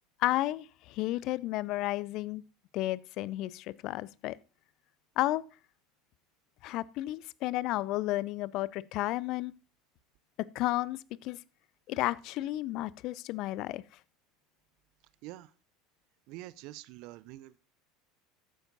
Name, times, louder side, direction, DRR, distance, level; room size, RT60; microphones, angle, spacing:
voice 1, 0.2-2.4 2.7-4.4 5.2-5.4 6.6-9.5 10.4-11.4 11.9-13.8, left 16 dB, 50° left, 0.4 m, -32 dB
voice 2, 16.3-17.6, right 17 dB, 55° right, 0.5 m, -46 dB
13.5 x 10.0 x 2.7 m
figure-of-eight pair, 75°, 0 cm